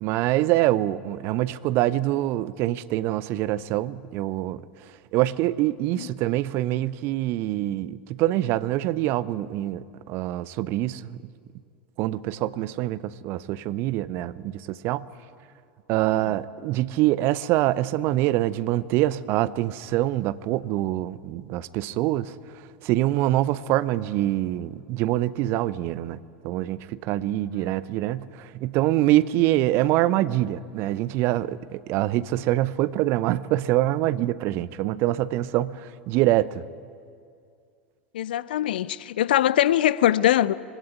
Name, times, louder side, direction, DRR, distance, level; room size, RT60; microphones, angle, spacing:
voice 1, 0.0-4.6 5.1-11.0 12.0-15.1 15.9-22.3 22.8-36.6, right 15 dB, 45° right, 0.7 m, -25 dB
voice 2, 38.1-40.5, left 12 dB, 60° left, 0.6 m, -22 dB
22.0 x 16.5 x 10.0 m
figure-of-eight pair, 80°, 6 cm